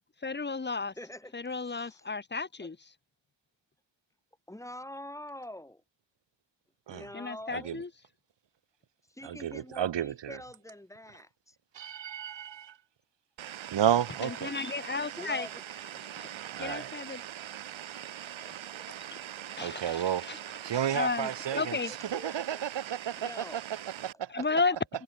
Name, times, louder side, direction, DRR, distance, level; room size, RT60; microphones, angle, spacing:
voice 1, 0.2-0.9 1.3-2.8 7.1-7.9 14.2-15.5 16.2-16.3 16.6-17.2 18.4-18.5 19.1-19.2 19.6-20.4 20.9-21.9 24.3-24.8, left 4 dB, 20° left, 3.2 m, -33 dB
voice 2, 1.0-2.0 2.6-2.7 4.5-5.8 6.9-7.8 9.1-11.6 15.2-16.2 18.5-18.9 19.4-19.5 21.5-22.6 23.2-23.6 24.4-24.5, left 1 dB, 5° left, 4.4 m, -46 dB
voice 3, 9.2-10.4 11.7-12.7 13.7-14.5 16.5-16.9 19.6-20.3 20.6-21.8 22.1-23.6 24.0-24.3, right 10 dB, 65° right, 4.9 m, -32 dB
sound 1, 13.4-24.1, right 11 dB, 80° right, 7.9 m, -42 dB
wide cardioid pair, 145°, 46 cm